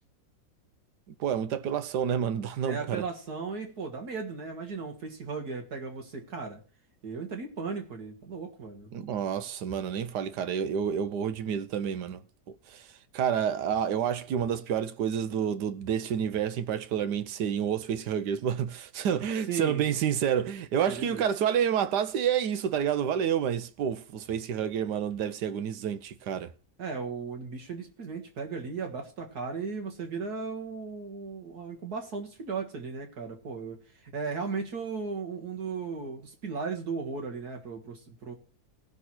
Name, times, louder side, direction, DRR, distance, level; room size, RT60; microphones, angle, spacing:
voice 1, 1.2-3.0 8.9-12.2 12.5-12.9 13.1-26.5, right 8 dB, 85° right, 1.4 m, -29 dB
voice 2, 2.6-6.6 7.0-8.9 19.5-19.8 20.9-21.2 26.8-38.3, right 4 dB, 70° right, 2.2 m, -36 dB
18.5 x 6.2 x 4.3 m
omnidirectional pair, 1.8 m